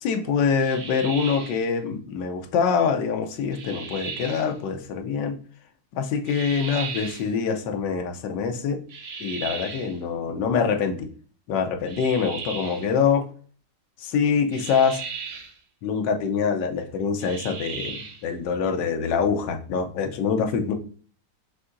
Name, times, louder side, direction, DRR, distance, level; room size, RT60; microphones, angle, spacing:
voice 1, 0.0-5.4 5.9-8.8 9.2-11.1 11.5-13.2 14.0-15.0 15.8-20.7, left 6 dB, 75° left, 5 dB, 1.3 m, -25 dB
sound 1, 0.6-1.6 3.5-4.5 6.3-7.3 8.9-10.0 11.9-12.9 14.5-15.5 17.2-18.2, right 5 dB, 55° right, 0.8 m, -36 dB
6.1 x 2.8 x 2.6 m, 0.42 s
omnidirectional pair, 2.0 m